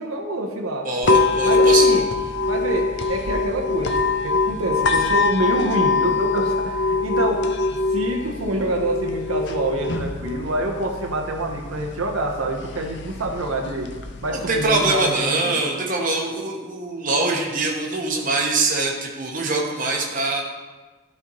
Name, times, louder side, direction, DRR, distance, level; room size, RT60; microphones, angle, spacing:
voice 1, 0.0-0.9 1.4-2.1 2.4-7.6 7.9-15.5, right 1 dB, 85° right, 2 dB, 1.0 m, -26 dB
voice 2, 0.8-1.9 14.3-20.4, right 3 dB, 40° right, -1 dB, 1.0 m, -23 dB
sound 1, 1.0-15.0, left 3 dB, 55° left, 0.5 m, -23 dB
12.5 x 4.4 x 3.0 m, 1.3 s
head